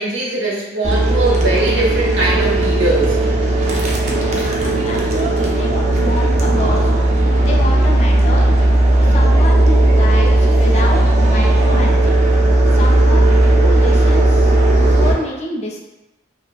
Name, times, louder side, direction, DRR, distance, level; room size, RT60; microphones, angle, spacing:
voice 1, 0.0-3.2, right 2 dB, 80° right, -4 dB, 0.7 m, -20 dB
sound 1, 0.8-15.1, right 1 dB, 35° right, 0.3 m, -14 dB
voice 2, 4.0-6.9 7.4-8.5 9.0-12.2 12.7-15.8, left 2 dB, 35° left, -2 dB, 0.4 m, -27 dB
2.3 x 2.2 x 2.3 m, 0.99 s
head